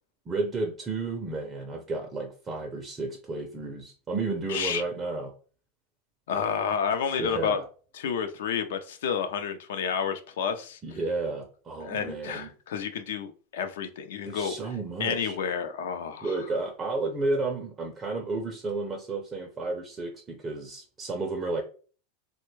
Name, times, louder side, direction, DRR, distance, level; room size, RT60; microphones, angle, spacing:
voice 1, 0.3-5.3 7.2-7.6 10.8-12.5 14.3-15.4 16.2-21.6, right 3 dB, 20° right, 0.4 m, -32 dB
voice 2, 4.5-4.8 6.3-7.6 7.9-11.0 11.8-14.6 15.0-16.3, left 7 dB, 80° left, 0.5 m, -30 dB
3.3 x 2.2 x 3.1 m
supercardioid pair, 155°, 0 cm